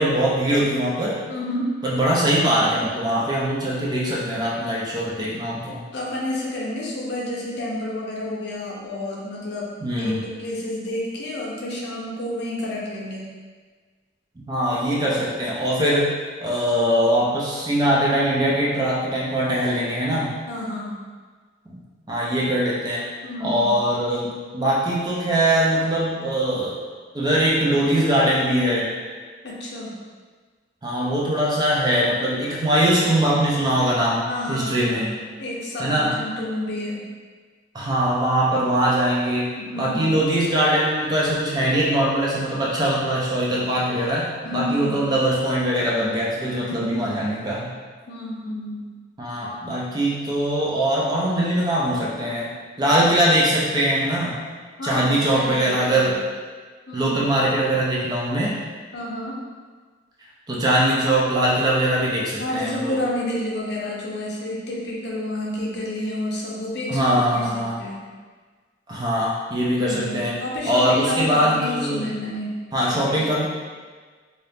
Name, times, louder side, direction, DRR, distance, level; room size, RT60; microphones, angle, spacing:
voice 1, 0.0-1.2 1.8-5.8 9.8-10.2 14.5-20.4 22.1-23.1 23.4-26.8 27.1-29.0 30.8-35.1 35.8-36.2 37.7-47.7 49.2-54.4 54.8-56.2 56.9-58.6 60.5-63.0 66.9-67.8 68.9-70.4 70.7-72.1 72.7-73.4, right 1 dB, 20° right, -5 dB, 0.5 m, -22 dB
voice 2, 1.3-1.7 5.9-13.3 20.5-21.0 23.2-23.7 29.4-29.9 34.3-37.1 39.6-40.1 44.4-45.1 46.6-47.2 48.1-48.9 54.8-55.6 55.9-56.1 56.9-57.1 58.9-59.4 62.4-68.0 69.8-72.6 72.8-73.3, left 1 dB, 60° left, -4 dB, 0.6 m, -30 dB
2.7 x 2.4 x 3.4 m, 1.5 s
head